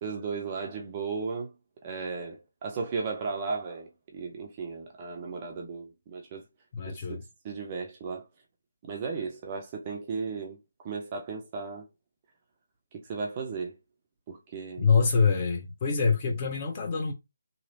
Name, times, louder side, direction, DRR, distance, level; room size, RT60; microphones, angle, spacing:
voice 1, 0.0-1.5 1.8-6.4 6.9-8.3 8.8-10.6 10.8-11.8 13.1-13.8 14.3-14.9, right 4 dB, 25° right, 0.5 m, -35 dB
voice 2, 6.7-7.2 14.8-17.1, left 5 dB, 25° left, 0.9 m, -25 dB
3.0 x 2.7 x 2.8 m
figure-of-eight pair, 150°, 0 cm